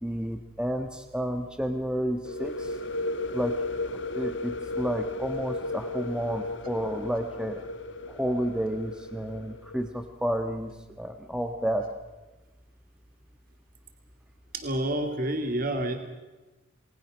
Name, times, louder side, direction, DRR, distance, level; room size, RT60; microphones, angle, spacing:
voice 1, 0.0-2.7 3.3-3.5 4.1-7.6 8.1-10.7 11.0-11.8, equal, 5° right, 6 dB, 1.3 m, -31 dB
sound 1, 2.2-9.9, left 2 dB, 65° left, 1.2 m, -35 dB
voice 2, 14.5-16.0, right 1 dB, 45° right, 6 dB, 2.3 m, -28 dB
29.0 x 20.5 x 6.3 m, 1.2 s
head